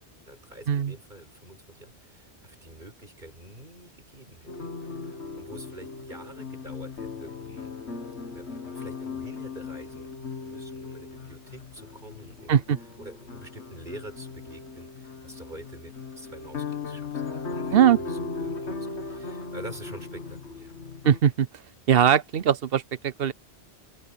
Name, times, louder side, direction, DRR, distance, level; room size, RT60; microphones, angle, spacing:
voice 1, 0.0-7.7 8.3-12.6 13.0-20.8, right 1 dB, 45° right, 6.6 m, -47 dB
sound 1, 4.5-21.2, left 4 dB, 90° left, 2.1 m, -37 dB
voice 2, 21.0-21.5 21.9-23.3, right 9 dB, 65° right, 0.8 m, -20 dB
open air
omnidirectional pair, 1.1 m